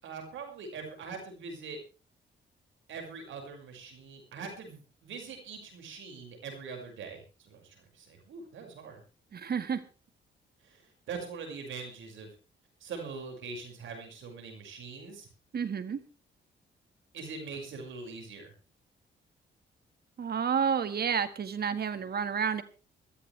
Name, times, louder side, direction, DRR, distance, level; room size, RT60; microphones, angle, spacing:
voice 1, 0.0-1.8 2.9-9.0 10.6-12.3 12.8-15.3 17.1-18.5, right 4 dB, 80° right, 3 dB, 6.0 m, -43 dB
voice 2, 9.3-9.8 15.5-16.0 20.2-22.6, right 7 dB, 55° right, 13 dB, 1.7 m, -30 dB
21.5 x 14.5 x 3.4 m, 0.33 s
cardioid pair, 80°, 20 cm